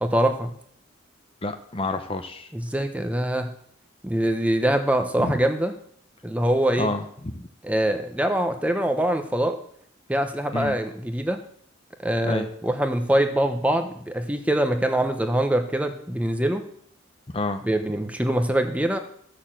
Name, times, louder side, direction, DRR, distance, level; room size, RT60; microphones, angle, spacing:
voice 1, 0.0-0.5 2.5-3.5 4.0-5.7 6.2-6.9 7.6-9.6 10.1-11.4 12.0-16.6 17.7-19.0, right 1 dB, 5° right, 6 dB, 0.9 m, -24 dB
voice 2, 1.4-2.5 5.2-5.4 6.8-7.4 10.5-10.8 12.2-12.5 17.3-17.6, left 2 dB, 25° left, 7 dB, 0.8 m, -29 dB
13.5 x 6.7 x 7.5 m, 0.65 s
head